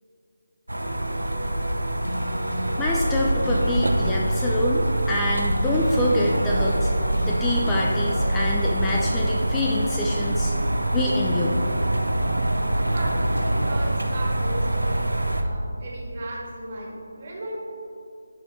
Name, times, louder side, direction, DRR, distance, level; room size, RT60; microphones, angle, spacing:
sound 1, 0.7-9.3, equal, 80° left, 1.4 m, -33 dB
sound 2, 0.7-15.4, right 1 dB, 80° right, 0.7 m, -25 dB
voice 1, 2.8-6.9 7.2-10.5 10.9-11.6, left 1 dB, 10° left, -3 dB, 0.4 m, -26 dB
voice 2, 12.8-15.0 15.4-17.5, right 1 dB, 40° right, -3 dB, 1.7 m, -36 dB
11.0 x 4.4 x 3.2 m, 2.8 s
figure-of-eight pair, 155°, 0 cm